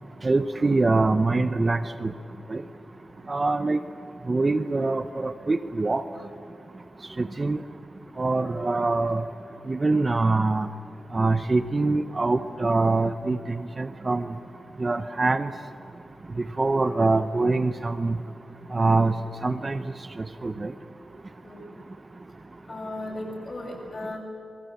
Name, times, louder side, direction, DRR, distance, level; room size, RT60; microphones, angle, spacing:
voice 1, 0.2-2.1 2.5-2.6 3.3-3.8 4.3-6.0 7.2-7.6 8.2-9.2 9.7-10.7 11.1-13.4 13.8-14.2 14.8-15.5 16.6-18.2 18.7-19.1 19.4-19.8 20.4-20.7, right 3 dB, 25° right, 10 dB, 0.6 m, -24 dB
voice 2, 22.7-24.2, left 2 dB, 35° left, -1 dB, 6.4 m, -36 dB
28.5 x 20.5 x 8.3 m, 2.8 s
wide cardioid pair, 175°, 0 cm